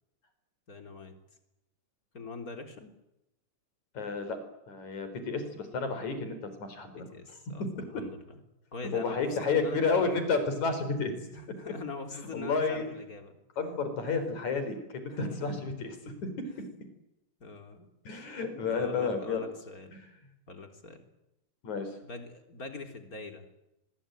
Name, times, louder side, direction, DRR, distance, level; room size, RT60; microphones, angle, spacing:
voice 1, 0.7-1.1 2.1-2.9 6.9-8.4 8.7-10.1 11.3-13.3 15.1-15.6 16.5-16.7 17.4-17.9 18.7-19.9 20.5-21.0 22.0-23.5, left 3 dB, 25° left, 5 dB, 3.7 m, -43 dB
voice 2, 4.0-4.4 4.7-7.4 8.9-11.3 12.3-12.8 13.6-16.0 18.1-19.5 19.9-20.1 21.6-21.9, left 4 dB, 65° left, 9 dB, 5.6 m, -31 dB
24.5 x 22.0 x 9.1 m, 0.88 s
omnidirectional pair, 3.6 m